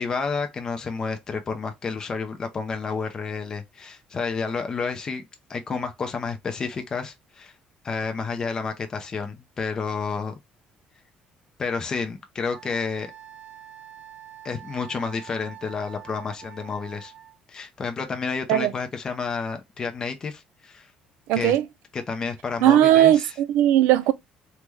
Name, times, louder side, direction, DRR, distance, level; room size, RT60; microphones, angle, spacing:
voice 1, 0.0-7.5 7.8-10.4 11.6-13.1 14.4-17.1 17.5-20.9 21.3-21.6 21.9-23.3, left 5 dB, 20° left, 0.4 m, -30 dB
Wind instrument woodwind instrument, 12.5-17.4, right 11 dB, 35° right, 0.5 m, -45 dB
voice 2, 21.3-21.6 22.6-24.1, right 12 dB, 90° right, 0.3 m, -18 dB
3.4 x 2.1 x 3.1 m
cardioid pair, 175°, 3 cm